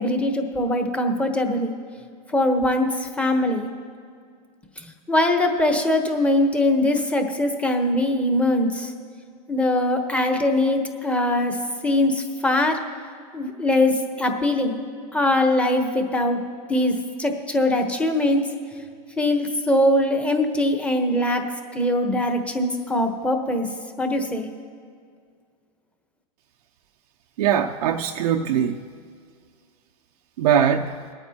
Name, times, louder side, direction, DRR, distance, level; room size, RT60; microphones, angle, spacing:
voice 1, 0.0-1.7 2.3-2.9 3.2-3.7 5.1-8.9 9.5-11.6 11.8-12.8 13.3-14.8 15.1-16.4 16.7-16.9 17.2-18.4 19.2-21.4 21.7-23.7 24.0-24.5, left 1 dB, 5° left, 4 dB, 1.1 m, -21 dB
voice 2, 27.4-28.9 30.4-31.0, right 8 dB, 85° right, 3 dB, 0.6 m, -21 dB
22.5 x 8.9 x 2.9 m, 2.1 s
supercardioid pair, 130°, 20 cm